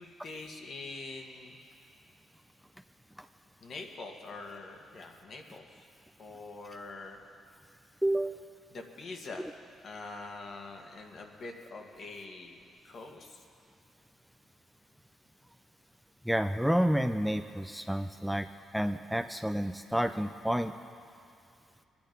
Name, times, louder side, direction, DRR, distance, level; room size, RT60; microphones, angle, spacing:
voice 1, 0.0-1.6 3.6-5.6 6.2-7.2 8.7-9.5 9.8-12.6 12.8-13.4, left 3 dB, 55° left, 2 dB, 1.8 m, -44 dB
voice 2, 8.0-8.4 16.3-18.5 18.7-20.7, equal, ahead, 7 dB, 0.5 m, -29 dB
21.5 x 10.5 x 5.3 m, 2.4 s
cardioid pair, 90°, 0 cm